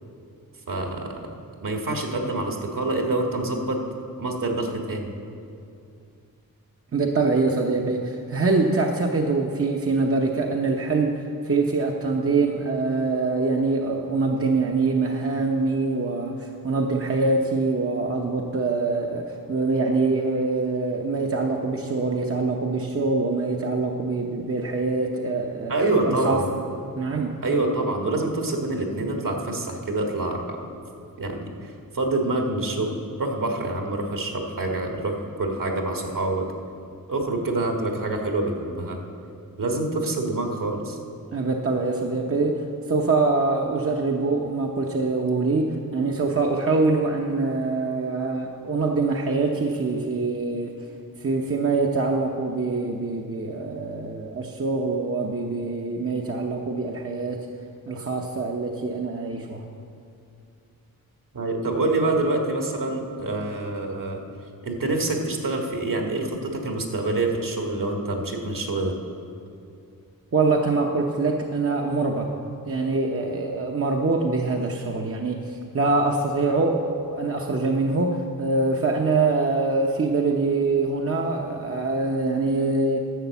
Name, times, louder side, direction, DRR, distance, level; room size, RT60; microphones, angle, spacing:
voice 1, 0.7-1.3 1.6-3.8 4.2-5.1 25.7-26.5 27.4-30.7 31.2-36.5 37.1-39.0 39.6-41.0 61.3-64.2 64.6-68.9, right 2 dB, 65° right, 2 dB, 1.7 m, -26 dB
voice 2, 6.9-25.7 26.1-26.4 27.0-27.4 41.3-50.7 51.2-57.5 57.9-59.6 70.3-72.4 72.7-83.0, right 3 dB, 40° right, 1 dB, 0.8 m, -24 dB
11.5 x 7.2 x 7.0 m, 2.5 s
wide cardioid pair, 80°, 36 cm